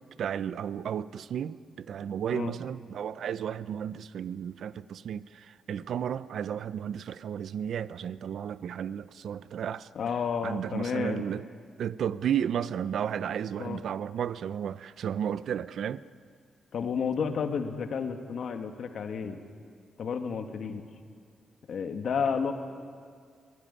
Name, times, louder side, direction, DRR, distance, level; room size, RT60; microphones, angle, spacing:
voice 1, 0.2-9.9 10.4-11.4 11.8-16.0, right 8 dB, 70° right, 0.6 m, -33 dB
voice 2, 10.0-11.3 13.6-13.8 16.7-19.4 20.0-20.8 21.7-22.5, left 6 dB, 60° left, 1.9 m, -31 dB
23.0 x 18.5 x 9.8 m
wide cardioid pair, 140°, 0 cm